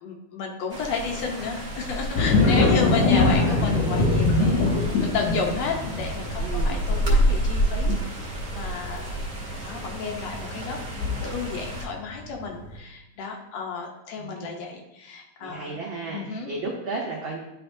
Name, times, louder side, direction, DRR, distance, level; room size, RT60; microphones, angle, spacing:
voice 1, 0.0-9.1 9.4-15.8 16.1-16.5, left 5 dB, 70° left, 1 dB, 1.8 m, -32 dB
sound 1, 0.7-11.9, right 1 dB, 20° right, 1.1 m, -29 dB
sound 2, 2.1-11.8 12.2-12.7, left 3 dB, 85° left, 3.0 m, -23 dB
voice 2, 2.3-3.7 6.4-6.8 14.2-14.5 15.4-17.4, right 3 dB, 80° right, -2 dB, 1.1 m, -34 dB
10.5 x 4.4 x 2.6 m, 0.91 s
omnidirectional pair, 3.4 m